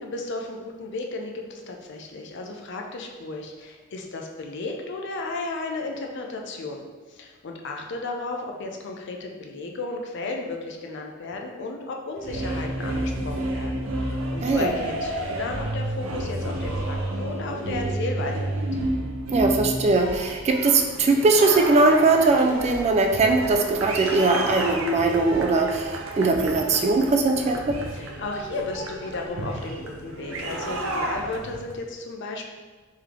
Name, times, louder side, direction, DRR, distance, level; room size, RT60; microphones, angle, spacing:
voice 1, 0.0-6.8 7.1-18.6 27.9-32.4, left 3 dB, 60° left, 2 dB, 0.5 m, -34 dB
sound 1, 12.2-31.7, right 1 dB, 85° right, 0.6 m, -31 dB
voice 2, 19.3-27.8, right 3 dB, 35° right, 3 dB, 0.3 m, -20 dB
3.3 x 3.1 x 3.6 m, 1.4 s
head